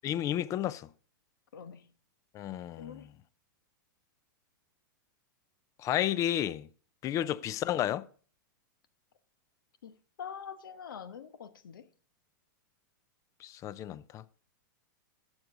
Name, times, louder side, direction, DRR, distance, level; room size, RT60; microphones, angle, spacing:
voice 1, 0.0-0.9 2.3-3.0 5.8-6.7 7.0-8.1 13.4-14.2, left 12 dB, 30° left, 0.5 m, -32 dB
voice 2, 1.5-1.9 2.8-3.1 7.2-7.4 9.8-11.9, left 7 dB, 85° left, 1.0 m, -45 dB
11.5 x 7.9 x 3.8 m
hypercardioid pair, 125°, 11 cm